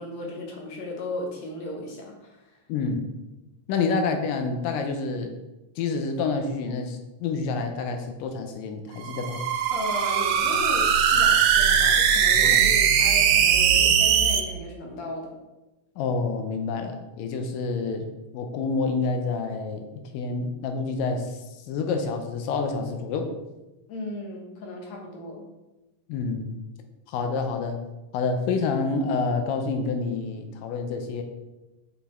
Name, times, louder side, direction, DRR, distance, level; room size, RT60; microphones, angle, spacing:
voice 1, 0.0-2.6 3.8-3.9 9.7-15.3 23.9-25.4, left 1 dB, 60° left, 0 dB, 2.3 m, -36 dB
voice 2, 2.7-3.1 3.7-5.3 5.8-9.4 16.0-18.1 18.3-19.9 20.1-21.4 21.7-23.3 26.1-26.5 27.1-27.8 28.1-31.2, left 4 dB, 85° left, 5 dB, 2.4 m, -28 dB
sound 1, 9.0-14.4, right 7 dB, 75° right, 2.1 m, -20 dB
6.1 x 5.9 x 4.3 m, 1.0 s
omnidirectional pair, 3.8 m